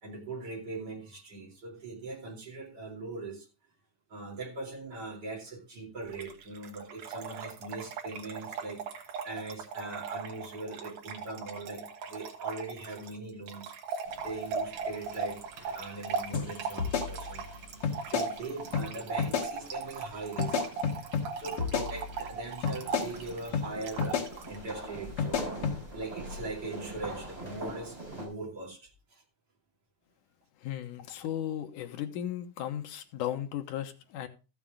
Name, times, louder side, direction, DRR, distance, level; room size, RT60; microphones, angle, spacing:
voice 1, 0.0-3.5 4.1-14.0 14.2-17.4 18.1-20.6 21.4-25.4 25.9-29.2, right 3 dB, 35° right, 3.1 m, -41 dB
Trickle dribble / Fill (with liquid), 6.1-24.6, right 5 dB, 65° right, 2.5 m, -39 dB
sound 1, 14.1-28.3, right 1 dB, 10° right, 4.6 m, -45 dB
sound 2, 16.3-16.5 16.8-17.5 17.8-18.3 18.7-18.9 19.2-19.5 20.4-21.3 21.6-22.3 22.6-23.1 23.5-23.7 24.0-24.3 25.2-25.8, left 6 dB, 60° left, 3.2 m, -30 dB
voice 2, 30.6-34.3, left 11 dB, 85° left, 2.6 m, -36 dB
14.0 x 7.3 x 3.6 m
omnidirectional pair, 3.6 m